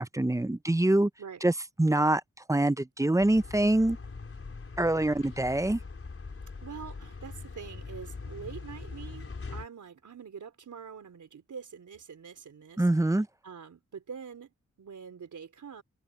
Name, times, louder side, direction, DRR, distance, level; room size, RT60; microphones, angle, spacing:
voice 1, 0.0-1.1 1.4-1.5 1.8-2.2 2.5-4.0 4.8-5.8 12.8-13.3, right 1 dB, 10° right, 0.6 m, -24 dB
sound 1, 3.2-9.7, left 4 dB, 50° left, 4.3 m, -42 dB
voice 2, 6.6-12.8 13.4-15.8, right 6 dB, 85° right, 4.1 m, -45 dB
open air
wide cardioid pair, 85°, 29 cm